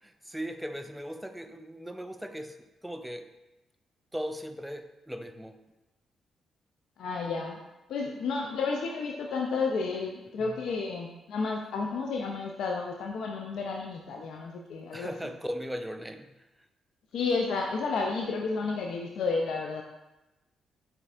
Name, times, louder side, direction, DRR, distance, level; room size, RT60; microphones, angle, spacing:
voice 1, 0.0-3.3 4.1-5.6 10.4-10.6 14.9-16.5, equal, 5° right, 7 dB, 0.4 m, -38 dB
voice 2, 7.0-7.6 7.9-15.1 17.1-19.8, left 4 dB, 65° left, 1 dB, 0.3 m, -31 dB
6.7 x 2.4 x 2.4 m, 1.0 s
hypercardioid pair, 40°, 0 cm